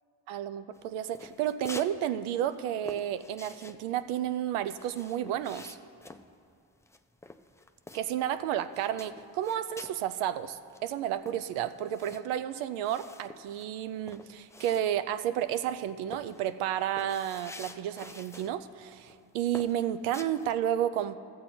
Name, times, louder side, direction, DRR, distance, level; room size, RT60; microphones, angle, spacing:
voice 1, 0.3-5.8 7.9-21.2, right 11 dB, 85° right, 12 dB, 0.6 m, -31 dB
sound 1, 0.8-2.0 2.2-8.3 8.7-10.0 10.4-10.5 10.7-15.2 15.5-15.8 16.1-18.6 18.9-19.2 19.5-20.5, left 2 dB, 5° left, 0.3 m, -48 dB
13.0 x 7.6 x 4.3 m, 2.5 s
supercardioid pair, 60°, 49 cm